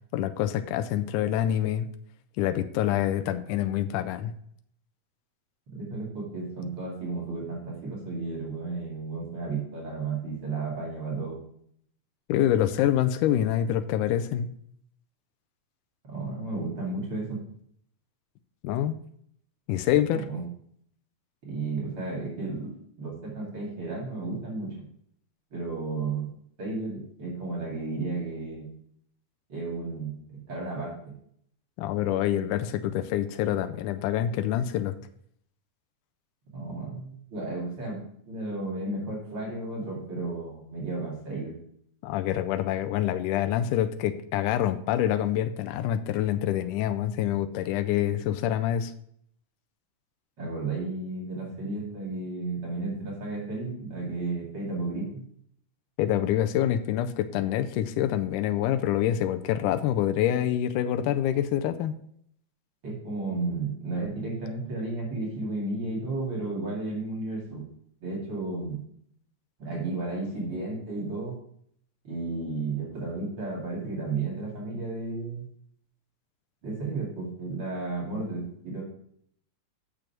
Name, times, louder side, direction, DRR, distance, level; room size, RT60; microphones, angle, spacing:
voice 1, 0.1-1.9 2.4-4.3 12.3-14.5 18.6-19.0 19.7-20.3 31.8-35.0 42.0-48.9 56.0-61.9, left 11 dB, 90° left, 9 dB, 2.1 m, -26 dB
voice 2, 5.7-11.4 16.1-17.4 20.3-20.4 21.4-22.7 23.0-24.7 25.5-26.3 26.6-28.7 29.5-31.1 36.5-38.0 38.3-41.5 50.4-55.2 62.8-67.6 68.0-68.8 69.6-71.3 72.0-75.4 76.6-78.8, right 3 dB, 45° right, -4 dB, 3.1 m, -33 dB
6.9 x 6.3 x 5.9 m, 0.67 s
omnidirectional pair, 3.5 m